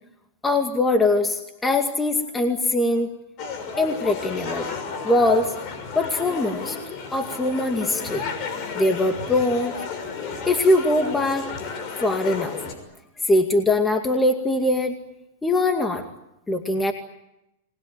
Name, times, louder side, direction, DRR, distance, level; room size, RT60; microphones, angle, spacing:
voice 1, 0.4-3.1 3.8-4.7 5.0-5.5 5.9-6.8 7.1-8.3 8.7-9.7 10.5-11.5 12.0-12.6 13.2-14.9 15.4-16.0 16.5-16.9, left 2 dB, 10° left, 5 dB, 2.1 m, -22 dB
sound 1, 3.4-12.7, left 5 dB, 40° left, 6.2 m, -32 dB
29.5 x 21.0 x 9.0 m, 0.87 s
hypercardioid pair, 130°, 0 cm